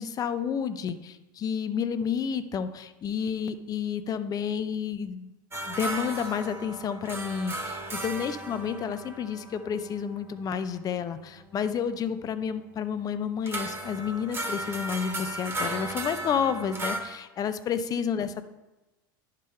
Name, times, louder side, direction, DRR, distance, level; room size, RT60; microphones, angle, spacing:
voice 1, 0.0-5.3 5.7-18.5, left 7 dB, 35° left, 11 dB, 0.5 m, -30 dB
sound 1, 5.5-10.9 13.5-17.0, right 1 dB, 20° right, 1.3 m, -35 dB
10.5 x 3.8 x 4.3 m, 1.1 s
hypercardioid pair, 95°, 11 cm